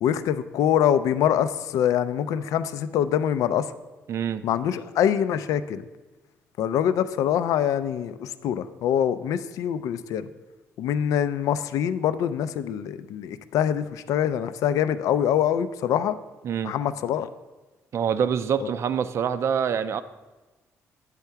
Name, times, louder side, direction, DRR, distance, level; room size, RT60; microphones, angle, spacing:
voice 1, 0.0-3.7 4.4-5.8 6.6-10.3 10.8-16.2 16.6-17.3 18.6-18.7, left 9 dB, 80° left, 13 dB, 0.4 m, -24 dB
voice 2, 4.1-4.5 16.4-16.8 17.9-20.0, right 7 dB, 55° right, 12 dB, 0.4 m, -25 dB
8.9 x 3.5 x 5.6 m, 1.2 s
cardioid pair, 115°, 6 cm